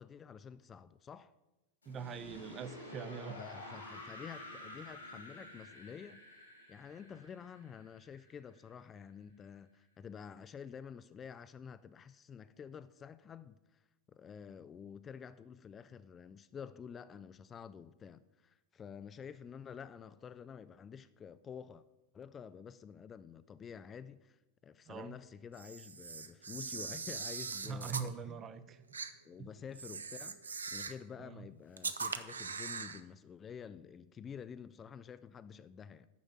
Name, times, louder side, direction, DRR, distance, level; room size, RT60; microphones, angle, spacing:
voice 1, 0.0-1.3 3.4-6.2 6.7-13.8 14.1-21.8 22.1-28.4 29.2-36.1, left 7 dB, 25° left, 0.3 m, -49 dB
sound 1, 1.8-8.7, left 1 dB, 80° left, 3.3 m, -50 dB
voice 2, 1.9-3.4 24.9-25.2 27.6-28.8 29.4-29.5 31.2-31.5, right 6 dB, 30° right, 0.6 m, -43 dB
Camera, 25.5-28.1 28.9-29.1 29.7-31.0 31.8-33.0, right 5 dB, 75° right, 0.6 m, -41 dB
9.7 x 6.1 x 7.2 m
figure-of-eight pair, 90°, 0 cm